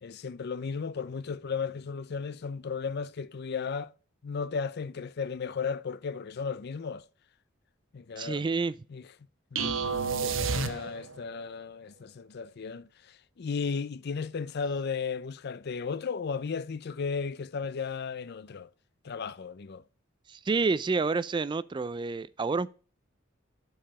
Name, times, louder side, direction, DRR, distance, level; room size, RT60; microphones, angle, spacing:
voice 1, 0.0-3.9 4.2-7.0 7.9-8.4 8.9-9.1 9.5-18.7 19.0-19.8, left 5 dB, 55° left, 0.5 m, -35 dB
voice 2, 8.2-8.7 20.3-22.7, right 4 dB, 25° right, 0.3 m, -29 dB
sound 1, 9.6-11.3, right 4 dB, 75° right, 0.9 m, -30 dB
10.5 x 4.7 x 4.9 m
head